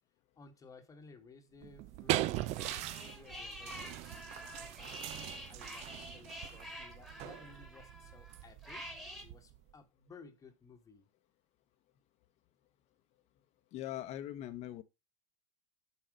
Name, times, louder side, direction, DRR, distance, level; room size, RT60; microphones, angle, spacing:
voice 1, 0.4-4.2 4.8-11.1, left 4 dB, 20° left, 1.2 m, -57 dB
tub fart, 1.6-9.7, right 16 dB, 40° right, 0.4 m, -40 dB
sound 1, 2.3-9.2, equal, ahead, 1.6 m, -48 dB
voice 2, 13.7-14.8, left 13 dB, 40° left, 0.8 m, -41 dB
7.4 x 4.1 x 5.1 m
supercardioid pair, 130°, 17 cm